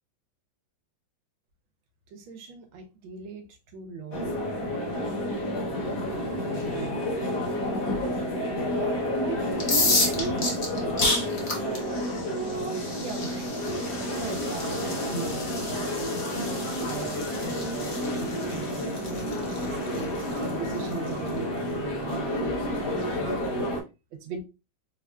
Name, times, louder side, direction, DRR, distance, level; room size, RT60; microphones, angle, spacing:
voice 1, 2.1-4.5 6.0-7.0 9.2-12.3 13.0-16.5 16.8-23.4 24.1-24.4, right 5 dB, 80° right, 1.5 m, -40 dB
sound 1, 4.1-23.8, left 1 dB, 60° left, 1.3 m, -30 dB
sound 2, 9.5-21.3, left 2 dB, 75° left, 0.4 m, -32 dB
4.7 x 2.5 x 2.2 m
omnidirectional pair, 2.2 m